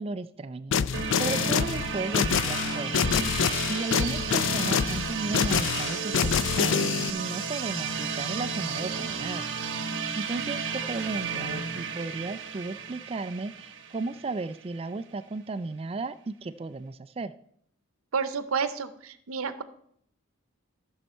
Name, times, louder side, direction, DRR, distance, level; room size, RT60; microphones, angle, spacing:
voice 1, 0.0-3.1 3.7-9.4 9.8-17.3, right 3 dB, 25° right, 13 dB, 0.3 m, -35 dB
sound 1, 0.7-7.1, left 7 dB, 65° left, 0.4 m, -26 dB
sound 2, 0.9-14.7, right 5 dB, 60° right, 1.0 m, -33 dB
voice 2, 18.1-19.6, right 5 dB, 90° right, 12 dB, 0.7 m, -30 dB
14.0 x 6.4 x 4.4 m, 0.68 s
head